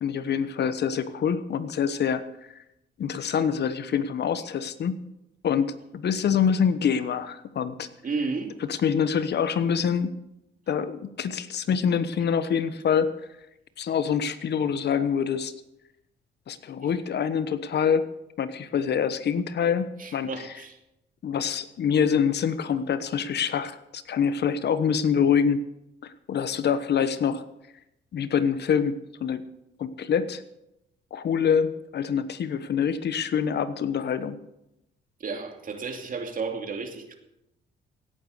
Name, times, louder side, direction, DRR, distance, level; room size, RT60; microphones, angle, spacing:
voice 1, 0.0-2.2 2.5-2.6 3.0-5.0 5.4-7.9 8.7-10.2 10.7-13.1 13.8-15.5 16.5-18.1 18.4-20.3 21.2-25.6 26.0-27.4 28.1-29.4 29.8-30.4 31.1-34.4, left 7 dB, 60° left, 13 dB, 1.1 m, -25 dB
voice 2, 8.0-8.6 20.0-20.8 35.2-37.2, right 4 dB, 45° right, 4 dB, 2.7 m, -32 dB
17.0 x 9.4 x 6.7 m, 0.88 s
cardioid pair, 90°, 20 cm